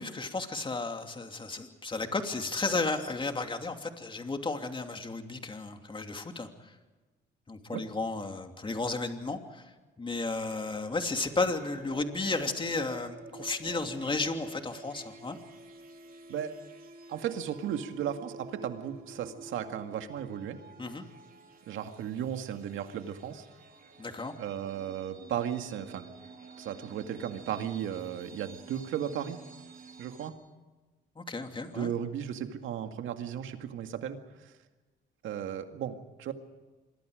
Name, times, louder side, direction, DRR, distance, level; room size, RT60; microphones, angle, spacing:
voice 1, 0.0-6.7 7.5-9.7 10.0-15.4 20.8-21.0 24.0-24.3 31.2-31.9, left 3 dB, 25° left, 5 dB, 2.9 m, -33 dB
sound 1, 10.8-30.3, right 3 dB, 45° right, 3.7 m, -50 dB
voice 2, 17.1-20.6 21.7-23.5 24.4-26.1 26.6-29.4 30.0-30.3 31.7-34.5 35.2-36.3, right 9 dB, 80° right, 7 dB, 2.0 m, -35 dB
27.0 x 23.0 x 5.1 m, 1.2 s
cardioid pair, 90°, 20 cm